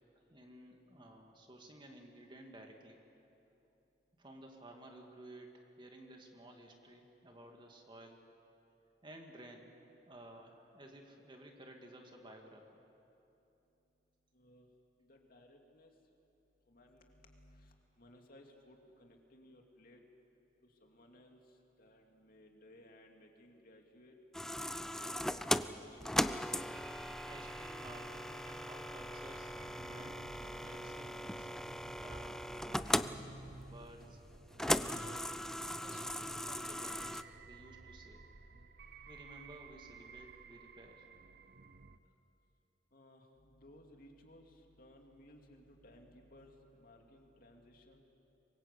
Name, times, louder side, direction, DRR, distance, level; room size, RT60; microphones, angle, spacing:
voice 1, 0.3-3.0 4.2-8.2 9.0-9.7 10.0-12.8 27.3-31.5 32.0-33.2 33.6-34.2 34.5-35.1 35.6-38.2 39.1-41.1, right 1 dB, 25° right, 2 dB, 2.2 m, -55 dB
voice 2, 14.3-14.7 15.0-15.9 16.7-20.0 20.6-24.1 24.9-26.5 42.9-48.0, left 1 dB, 55° left, 2 dB, 2.6 m, -60 dB
sound 1, 24.3-37.2, left 1 dB, 5° left, 0.5 m, -38 dB
sound 2, 26.7-42.0, right 3 dB, 60° right, 0.9 m, -54 dB
24.0 x 21.0 x 8.4 m, 2.9 s
head